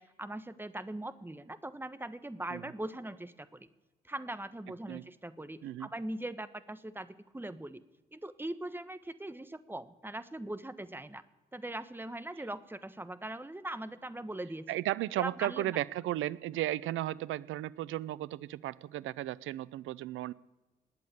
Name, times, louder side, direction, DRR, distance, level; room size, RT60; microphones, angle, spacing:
voice 1, 0.0-3.7 4.0-7.8 8.1-11.2 11.5-14.6 15.2-15.7, right 1 dB, 10° right, 12 dB, 1.3 m, -41 dB
voice 2, 14.7-20.3, right 14 dB, 70° right, 20 dB, 0.6 m, -35 dB
20.0 x 8.5 x 8.4 m, 1.2 s
hypercardioid pair, 40°, 21 cm